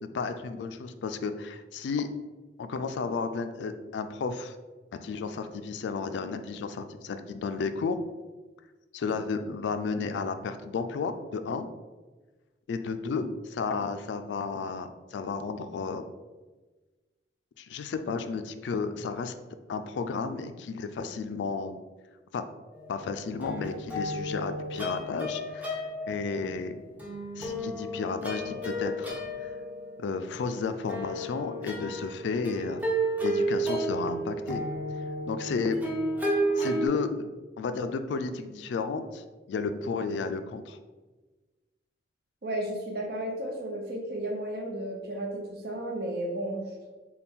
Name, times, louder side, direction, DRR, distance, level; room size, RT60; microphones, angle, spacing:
voice 1, 0.0-2.1 2.6-4.6 4.9-8.0 8.9-11.7 12.7-16.0 17.6-19.3 19.7-21.8 22.3-22.4 22.9-25.7 26.1-26.7 27.4-29.5 30.0-32.8 33.2-34.6 35.3-35.8 36.6-37.3 37.6-40.8, left 4 dB, 75° left, 9 dB, 0.3 m, -33 dB
sound 1, 22.7-23.0 23.3-26.5 27.0-36.9, right 1 dB, 10° right, 0.5 m, -32 dB
voice 2, 42.4-46.9, right 1 dB, 60° right, 1 dB, 0.7 m, -33 dB
4.2 x 2.3 x 3.5 m, 1.3 s
head